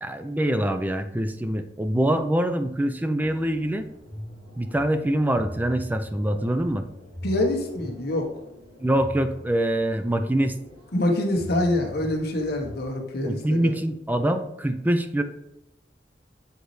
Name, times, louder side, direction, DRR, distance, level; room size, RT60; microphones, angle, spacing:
voice 1, 0.0-3.9 4.6-6.8 8.8-10.5 13.2-15.2, right 1 dB, 10° right, 8 dB, 0.4 m, -24 dB
sound 1, 3.2-12.9, left 1 dB, 30° right, 2.0 m, -42 dB
voice 2, 7.2-8.3 10.9-13.7, left 1 dB, 60° left, 1 dB, 1.3 m, -25 dB
8.0 x 4.0 x 3.2 m, 0.90 s
head